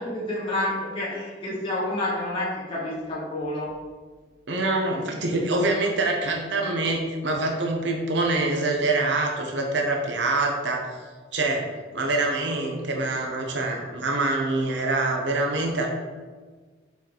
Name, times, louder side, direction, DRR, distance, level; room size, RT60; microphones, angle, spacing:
voice 1, 0.0-3.7, left 1 dB, 30° left, -8 dB, 1.9 m, -29 dB
voice 2, 4.5-10.9 11.3-11.7 11.9-15.9, right 2 dB, 80° right, 1 dB, 1.0 m, -25 dB
7.1 x 4.7 x 4.0 m, 1.4 s
head